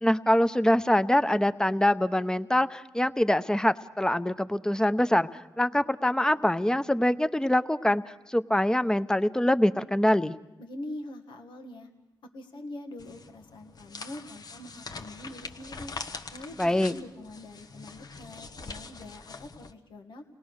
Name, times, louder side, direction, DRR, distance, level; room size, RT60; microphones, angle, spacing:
voice 1, 0.0-5.3 5.6-10.3 16.6-16.9, left 1 dB, 10° left, 12 dB, 0.8 m, -24 dB
voice 2, 10.6-11.9 12.2-15.9 16.3-20.3, left 1 dB, 90° left, 4 dB, 1.7 m, -43 dB
sound 1, 13.0-19.7, left 4 dB, 60° left, 1.1 m, -43 dB
28.0 x 18.5 x 6.4 m, 0.95 s
cardioid pair, 60°, 8 cm